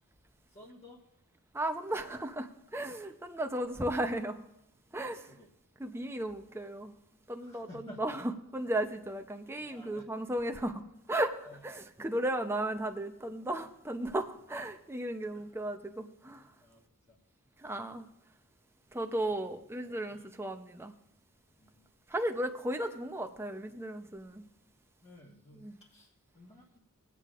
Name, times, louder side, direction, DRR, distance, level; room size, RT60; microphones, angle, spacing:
voice 1, 0.5-1.0 2.8-3.1 5.3-5.5 7.4-8.2 9.6-10.0 11.4-11.6 15.3-15.4 16.4-16.8 17.1-17.2 20.1-20.2 21.6-21.8 25.0-26.8, left 1 dB, 25° left, -5 dB, 1.4 m, -54 dB
voice 2, 1.5-4.5 4.9-5.3 5.8-6.9 7.3-16.5 17.6-18.1 18.9-21.0 22.1-24.4 25.5-25.8, right 1 dB, 10° right, 5 dB, 0.6 m, -35 dB
21.5 x 8.3 x 2.5 m, 0.81 s
head